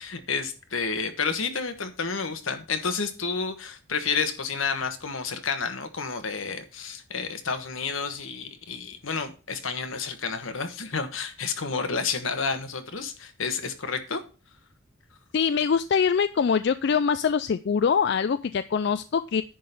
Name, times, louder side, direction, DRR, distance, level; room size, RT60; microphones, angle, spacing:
voice 1, 0.0-14.2, left 5 dB, 80° left, 8 dB, 1.3 m, -30 dB
voice 2, 15.3-19.4, left 6 dB, 55° left, 12 dB, 0.3 m, -23 dB
10.0 x 3.9 x 6.7 m, 0.34 s
head